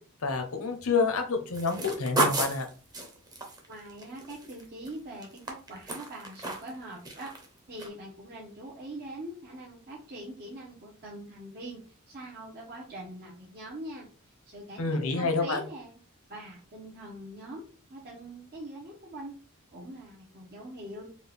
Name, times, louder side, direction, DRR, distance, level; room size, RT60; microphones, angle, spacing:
voice 1, 0.2-2.7 14.8-15.6, left 4 dB, 90° left, 6 dB, 0.9 m, -28 dB
sound 1, 1.5-4.9 5.2-6.8 7.1-7.5 7.8-7.9, right 2 dB, 20° right, 0.9 m, -32 dB
voice 2, 3.7-7.3 7.7-14.1 14.5-16.0 16.3-17.6 17.9-19.3 19.7-21.1, right 1 dB, 45° right, -5 dB, 1.0 m, -43 dB
4.3 x 2.4 x 3.5 m, 0.37 s
head